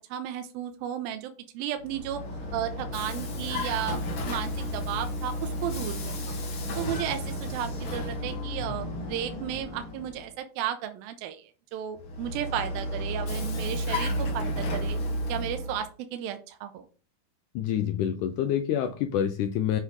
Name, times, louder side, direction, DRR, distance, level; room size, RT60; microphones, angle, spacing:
voice 1, 0.1-2.2 2.5-6.4 6.8-15.0 15.3-16.9, right 10 dB, 85° right, 7 dB, 2.4 m, -34 dB
Vehicle, 1.8-10.3 12.0-15.8, equal, 55° left, 1.5 m, -32 dB
voice 2, 17.6-19.8, left 10 dB, 90° left, 8 dB, 1.8 m, -27 dB
8.3 x 5.7 x 3.7 m, 0.37 s
omnidirectional pair, 4.3 m